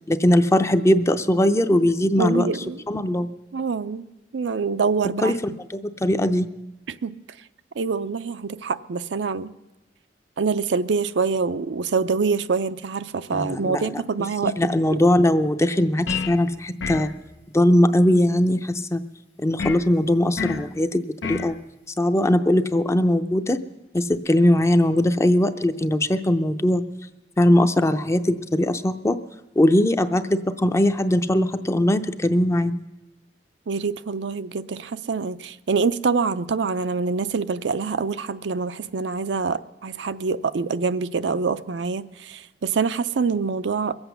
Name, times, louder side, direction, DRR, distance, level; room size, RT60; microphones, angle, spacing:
voice 1, 0.1-2.5 2.9-3.3 5.2-5.3 5.7-6.5 13.3-14.0 14.4-17.1 17.5-19.0 19.4-21.6 22.0-23.6 23.9-26.8 27.4-29.2 29.6-32.7, left 1 dB, 15° left, 0.5 m, -20 dB
voice 2, 2.2-2.8 3.5-4.1 4.3-5.4 6.9-7.1 7.8-9.5 10.4-15.0 33.7-43.9, right 5 dB, 75° right, 0.5 m, -25 dB
sound 1, 16.1-16.4 16.8-17.2 19.6-19.9 20.4-20.7 21.2-21.5, left 6 dB, 90° left, 0.7 m, -28 dB
22.0 x 8.0 x 6.9 m
head